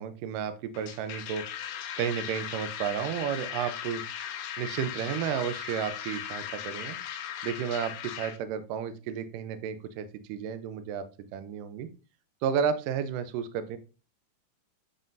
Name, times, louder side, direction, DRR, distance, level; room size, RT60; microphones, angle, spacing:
voice 1, 0.0-1.4 2.0-4.0 4.6-7.0 7.4-11.9 12.4-13.8, right 8 dB, 80° right, 10 dB, 2.2 m, -32 dB
sound 1, 0.7-8.4, left 9 dB, 90° left, 2.6 m, -38 dB
9.0 x 4.1 x 2.5 m, 0.33 s
omnidirectional pair, 4.0 m